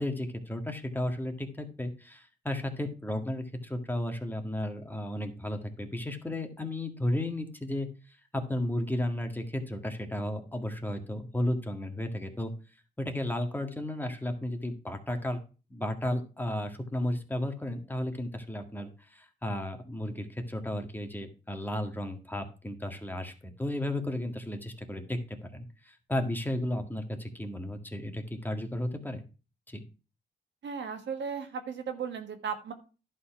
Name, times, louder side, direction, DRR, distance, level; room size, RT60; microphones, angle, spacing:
voice 1, 0.0-7.9 8.3-12.5 13.0-15.4 15.7-25.2 25.5-29.2 29.7-29.8, left 1 dB, 10° left, 4 dB, 1.8 m, -34 dB
voice 2, 30.6-32.7, right 6 dB, 75° right, 6 dB, 1.5 m, -36 dB
11.0 x 4.3 x 5.8 m, 0.34 s
cardioid pair, 75°, 19 cm